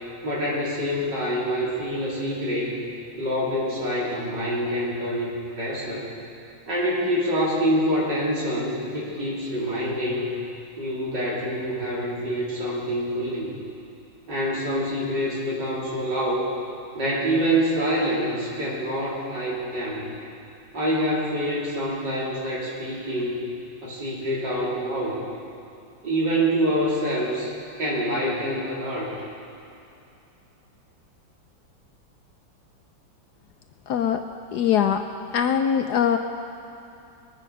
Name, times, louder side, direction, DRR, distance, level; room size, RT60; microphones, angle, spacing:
voice 1, 0.2-2.8 3.2-6.1 6.7-10.4 10.8-13.5 14.3-16.5 16.9-20.1 20.7-23.5 23.8-25.2 26.0-27.5 27.8-29.1, equal, 65° right, -6 dB, 4.0 m, -26 dB
voice 2, 33.9-34.2 34.5-35.0 35.3-36.2, left 8 dB, 70° left, 6 dB, 1.0 m, -21 dB
21.5 x 9.2 x 5.4 m, 2.7 s
omnidirectional pair, 2.1 m